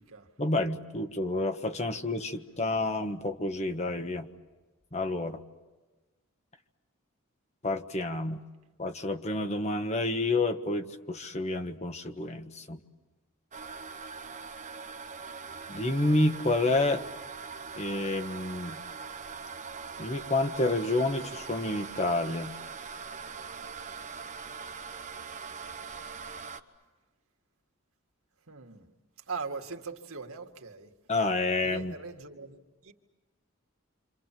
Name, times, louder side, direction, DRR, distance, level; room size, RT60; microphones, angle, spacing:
voice 1, 0.4-4.3 4.9-5.4 7.6-8.4 8.8-12.8 15.7-17.0 17.7-18.8 20.0-22.5 31.1-31.9, left 2 dB, 30° left, 1.4 m, -29 dB
sound 1, 13.5-26.6, right 5 dB, 35° right, 1.2 m, -42 dB
voice 2, 28.5-28.9 29.3-30.9 31.6-32.9, right 4 dB, 85° right, 2.2 m, -40 dB
28.5 x 27.0 x 7.6 m
head